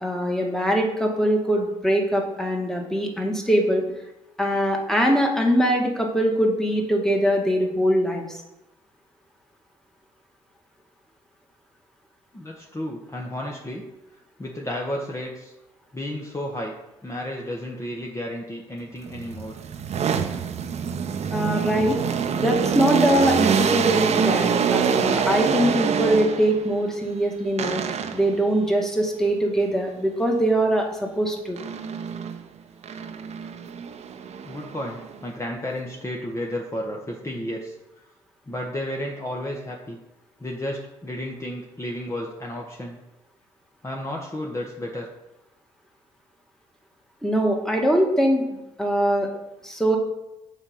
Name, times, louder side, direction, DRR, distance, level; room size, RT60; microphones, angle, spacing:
voice 1, 0.0-3.9 4.4-8.4 21.3-22.0 22.3-27.8 28.1-31.6 47.2-49.3 49.6-50.0, equal, 5° left, 1 dB, 2.2 m, -22 dB
voice 2, 12.3-13.8 14.4-15.5 15.9-16.7 17.0-19.6 34.4-37.7 38.5-40.0 40.4-43.0 43.8-45.1, left 1 dB, 20° left, -1 dB, 1.5 m, -32 dB
sound 1, 19.1-26.7 27.6-28.4 31.6-32.4 32.8-35.2, right 7 dB, 50° right, 0.9 m, -25 dB
7.1 x 5.1 x 5.7 m, 0.93 s
hypercardioid pair, 50°, 14 cm